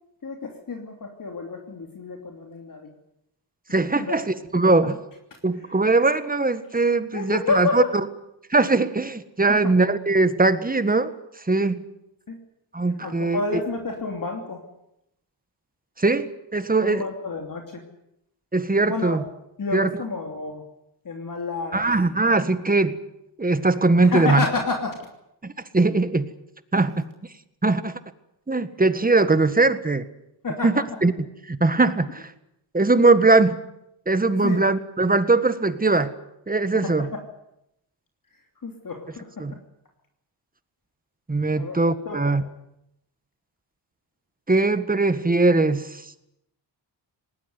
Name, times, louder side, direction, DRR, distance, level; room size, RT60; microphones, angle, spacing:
voice 1, 0.2-2.9 4.0-4.2 5.3-5.4 7.1-7.9 9.5-9.7 12.3-12.4 13.0-14.6 16.8-17.8 18.9-19.2 19.6-20.6 21.0-21.8 24.0-25.1 26.7-27.0 30.4-30.8 34.4-34.6 36.8-37.2 38.3-39.5 41.5-41.8 42.0-42.4, left 4 dB, 45° left, 3 dB, 3.0 m, -30 dB
voice 2, 3.7-5.0 5.4-7.8 8.5-11.1 11.5-11.8 12.7-13.4 16.0-17.0 18.5-19.2 19.7-19.9 21.7-23.0 23.4-24.4 25.4-26.3 26.7-26.9 27.6-27.9 28.5-30.1 30.6-31.1 31.5-32.3 32.7-33.6 34.1-36.1 36.5-37.1 39.4-39.5 41.3-42.4 44.5-46.1, right 3 dB, 20° right, 12 dB, 1.6 m, -20 dB
19.5 x 19.0 x 9.7 m, 0.82 s
cardioid pair, 95°, 46 cm